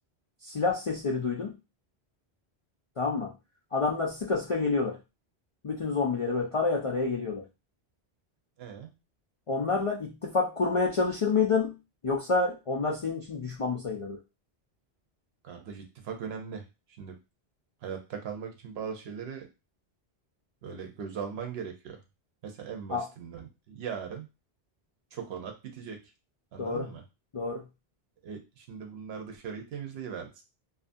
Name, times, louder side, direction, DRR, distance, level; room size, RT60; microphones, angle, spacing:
voice 1, 0.4-1.6 3.0-3.3 3.7-5.0 5.6-7.4 9.5-11.8 12.0-14.2 22.9-23.0 26.6-26.9 27.3-27.6, left 4 dB, 55° left, -1 dB, 0.3 m, -28 dB
voice 2, 8.6-8.9 15.4-16.7 17.0-17.2 17.8-19.5 20.6-22.0 22.4-24.3 25.1-26.0 26.5-27.0 28.2-30.4, right 7 dB, 75° right, 4 dB, 0.9 m, -39 dB
2.6 x 2.4 x 2.5 m, 0.26 s
omnidirectional pair, 1.1 m